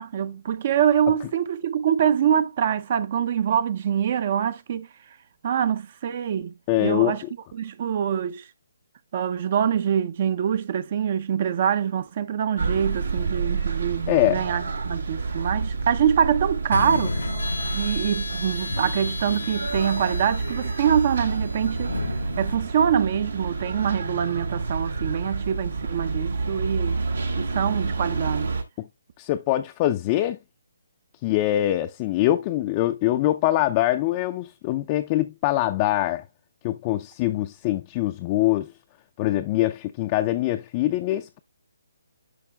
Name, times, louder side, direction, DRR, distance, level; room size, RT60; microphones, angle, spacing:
voice 1, 0.0-4.9 5.4-6.5 6.8-7.2 7.5-8.5 9.1-17.3 17.7-27.0 27.4-28.5, right 8 dB, 40° right, 0.5 m, -24 dB
voice 2, 6.7-7.2 14.1-14.4 28.8-28.9 29.2-30.4 31.2-36.2 36.6-38.7 39.2-41.4, left 15 dB, 25° left, 0.4 m, -23 dB
sound 1, 12.6-28.6, right 4 dB, 85° right, 2.0 m, -29 dB
sound 2, 16.7-22.6, left 3 dB, 90° left, 0.8 m, -32 dB
11.0 x 5.2 x 2.2 m
hypercardioid pair, 155°, 0 cm